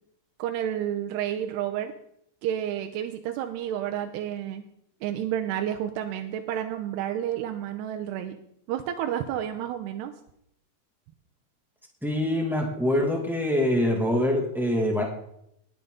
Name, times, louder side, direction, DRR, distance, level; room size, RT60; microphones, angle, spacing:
voice 1, 0.4-1.9 2.4-4.6 5.0-8.4 8.7-10.1, right 10 dB, 90° right, 5 dB, 2.9 m, -30 dB
voice 2, 12.0-15.0, left 1 dB, ahead, 0 dB, 0.9 m, -24 dB
19.5 x 9.4 x 3.9 m, 0.75 s
omnidirectional pair, 4.8 m